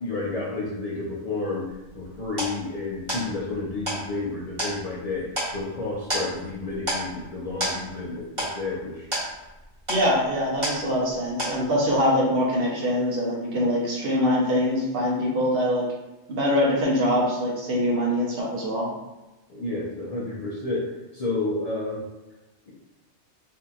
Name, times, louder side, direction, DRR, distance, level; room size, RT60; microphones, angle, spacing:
voice 1, 0.0-9.1 19.5-22.0, left 3 dB, 60° left, -6 dB, 0.4 m, -31 dB
sound 1, 1.7-11.1 11.4-12.0, right 1 dB, 25° right, 1.2 m, -32 dB
voice 2, 9.9-15.9 16.3-18.9, equal, 55° right, -3 dB, 0.9 m, -23 dB
2.7 x 2.6 x 2.3 m, 1.1 s
omnidirectional pair, 1.2 m